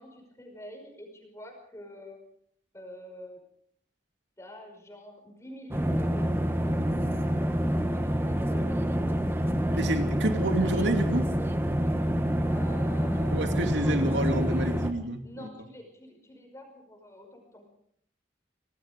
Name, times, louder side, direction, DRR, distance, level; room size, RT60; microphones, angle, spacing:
voice 1, 0.0-2.2 2.7-3.4 4.4-7.4 7.7-9.0 11.8-11.9 12.5-13.8 15.2-17.7, left 1 dB, 15° left, 3 dB, 5.5 m, -47 dB
Airplane Ambience, 5.7-14.9, equal, 10° right, 1.6 m, -27 dB
voice 2, 9.8-11.3 13.3-15.2, right 1 dB, 80° right, 6 dB, 2.5 m, -28 dB
26.0 x 19.0 x 5.2 m, 0.66 s
head